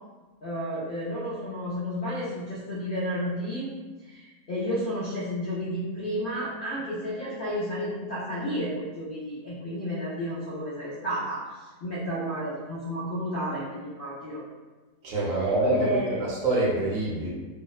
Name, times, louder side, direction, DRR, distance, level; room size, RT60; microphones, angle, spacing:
voice 1, 0.4-3.7 4.0-14.4 15.2-16.2, equal, 70° left, -9 dB, 0.4 m, -32 dB
voice 2, 15.0-17.3, right 2 dB, 65° right, -5 dB, 1.0 m, -26 dB
2.7 x 2.0 x 2.3 m, 1.3 s
omnidirectional pair, 1.6 m